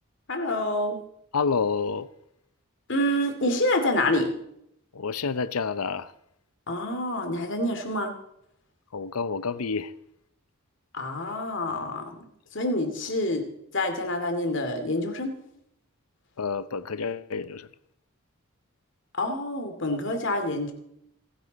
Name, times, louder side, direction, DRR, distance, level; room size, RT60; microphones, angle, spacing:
voice 1, 0.3-1.0 2.9-4.3 6.7-8.1 10.9-12.2 12.5-13.5 13.7-15.3 19.2-20.7, left 1 dB, 55° left, 2.6 m, -27 dB
voice 2, 1.3-2.1 4.9-6.1 8.9-9.9 16.4-17.7, left 5 dB, 85° left, 0.7 m, -28 dB
28.0 x 10.0 x 4.1 m
head